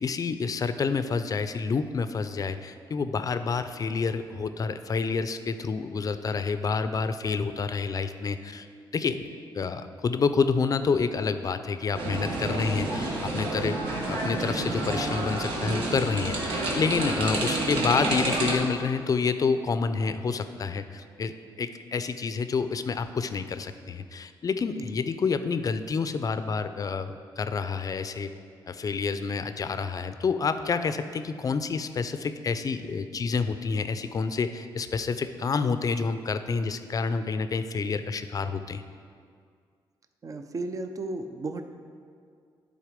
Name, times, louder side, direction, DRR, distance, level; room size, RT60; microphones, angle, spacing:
voice 1, 0.0-8.7 8.9-9.2 9.5-13.8 14.1-28.3 28.7-38.8, left 5 dB, 45° left, 11 dB, 0.5 m, -28 dB
sound 1, 11.9-18.5, right 2 dB, 85° right, 1.4 m, -29 dB
voice 2, 40.2-41.6, right 2 dB, 40° right, 7 dB, 0.6 m, -34 dB
10.5 x 4.1 x 5.1 m, 2.2 s
cardioid pair, 75°, 9 cm